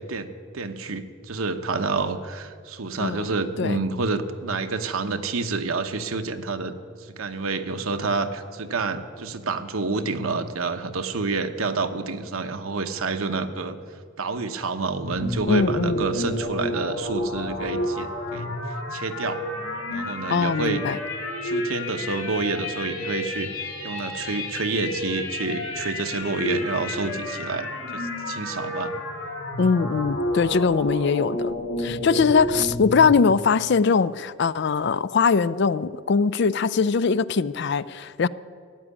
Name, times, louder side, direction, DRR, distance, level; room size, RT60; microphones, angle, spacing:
voice 1, 0.5-13.8 14.2-18.5 18.9-19.4 19.9-21.0 21.4-23.5 23.8-28.9, right 3 dB, 80° right, 1.0 m, -28 dB
sound 1, 14.9-33.1, left 1 dB, 75° left, 2.7 m, -30 dB
voice 2, 15.5-16.1 20.3-21.0 29.6-38.3, left 5 dB, 55° left, 0.4 m, -21 dB
15.0 x 8.3 x 9.9 m
head